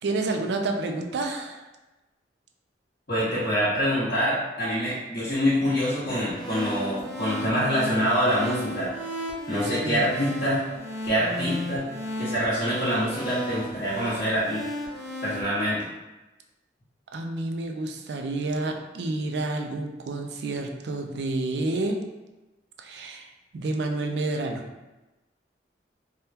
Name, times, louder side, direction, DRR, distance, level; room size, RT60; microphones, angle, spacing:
voice 1, 0.0-1.7 9.8-10.1 17.1-22.0 22.8-24.6, right 2 dB, 70° right, 4 dB, 0.4 m, -29 dB
voice 2, 3.1-8.9 9.5-10.6 11.0-11.8 12.2-14.6 15.2-15.9, equal, 60° left, -14 dB, 1.3 m, -25 dB
sound 1, 6.0-15.4, equal, ahead, 0.8 m, -35 dB
3.5 x 2.2 x 2.8 m, 1.1 s
head